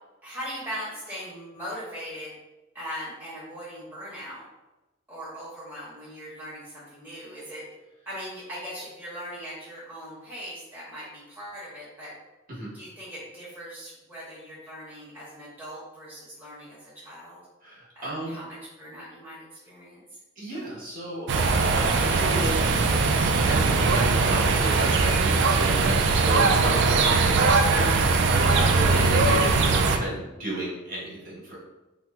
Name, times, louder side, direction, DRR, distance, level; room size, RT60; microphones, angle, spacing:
voice 1, 0.2-2.3 2.7-4.4 5.1-7.6 8.1-12.1 12.7-17.4 17.9-20.0, equal, 10° right, -9 dB, 0.8 m, -40 dB
voice 2, 17.6-18.4 20.4-22.7 23.4-31.6, right 1 dB, 45° right, -6 dB, 1.0 m, -33 dB
sound 1, 21.3-30.0, right 4 dB, 60° right, 0.3 m, -21 dB
2.8 x 2.1 x 3.4 m, 1.0 s
head